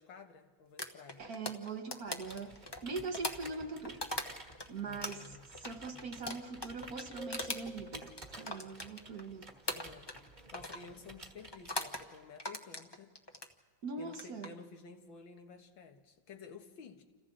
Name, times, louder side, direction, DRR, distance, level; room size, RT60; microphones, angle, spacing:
voice 1, 0.0-1.2 4.8-5.4 9.7-10.1 10.5-13.1 14.0-17.0, left 5 dB, 90° left, 5 dB, 2.2 m, -52 dB
sound 1, 0.8-4.7 5.0-9.3 9.7-10.3 10.5-10.9 11.5-12.0 12.4-13.5 14.0-14.5, left 1 dB, 20° left, 0.8 m, -40 dB
voice 2, 1.2-4.0 4.7-9.5 13.8-14.5, right 4 dB, 50° right, 6 dB, 1.7 m, -42 dB
Computer keyboard, 2.1-12.4, right 2 dB, 25° right, 1.7 m, -53 dB
sound 2, 7.2-8.7, equal, 50° left, 1.3 m, -50 dB
29.5 x 28.0 x 3.9 m, 1.4 s
omnidirectional pair, 2.1 m